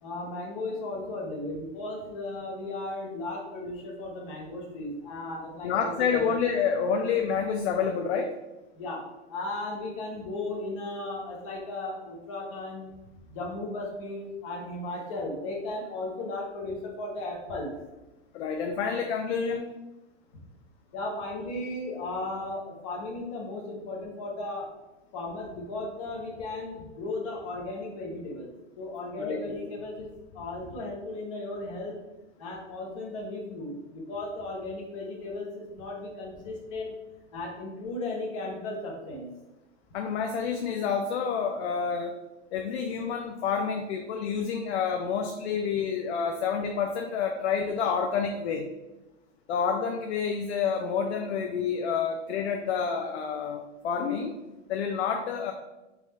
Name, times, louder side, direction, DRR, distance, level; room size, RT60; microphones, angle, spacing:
voice 1, 0.0-6.3 8.7-9.0 9.3-12.9 13.3-17.7 20.9-24.7 25.1-28.5 28.8-30.1 30.3-32.0 32.4-36.9 37.3-39.3, left 2 dB, 25° left, -1 dB, 0.7 m, -36 dB
voice 2, 5.6-8.3 18.3-19.7 29.2-29.4 39.9-42.2 42.5-48.7 49.5-54.3 54.7-55.5, left 6 dB, 65° left, 4 dB, 0.5 m, -28 dB
3.5 x 2.4 x 4.1 m, 1.0 s
supercardioid pair, 180°, 35 cm